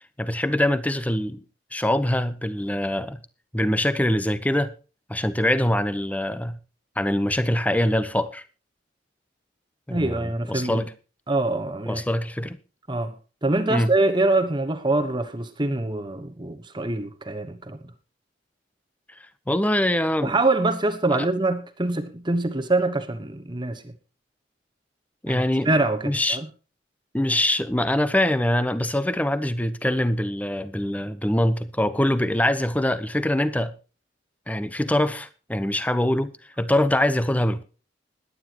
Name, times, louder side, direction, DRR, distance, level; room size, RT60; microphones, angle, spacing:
voice 1, 0.2-1.4 1.7-3.2 3.5-4.7 5.1-6.6 7.0-8.4 9.9-10.9 11.9-12.6 13.7-13.9 19.5-20.3 21.1-21.3 25.2-25.7 26.0-26.4 27.1-33.7 34.5-37.6, left 1 dB, 10° left, 0.8 m, -23 dB
voice 2, 9.9-10.9 11.3-12.0 12.9-13.1 13.4-17.8 20.2-23.9 25.3-26.5, right 2 dB, 25° right, 1.2 m, -24 dB
21.0 x 9.8 x 3.0 m
head